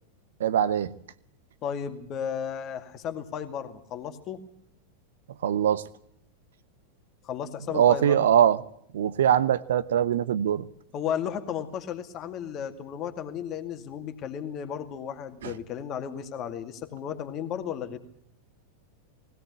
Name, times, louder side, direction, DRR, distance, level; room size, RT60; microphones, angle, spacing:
voice 1, 0.4-0.9 5.4-5.8 7.7-8.6 8.9-10.7 15.4-15.5, right 9 dB, 60° right, 17 dB, 1.0 m, -22 dB
voice 2, 1.6-4.4 7.2-8.2 10.9-18.0, left 8 dB, 35° left, 7 dB, 2.2 m, -34 dB
20.5 x 17.0 x 8.3 m, 0.71 s
figure-of-eight pair, 90°, 0 cm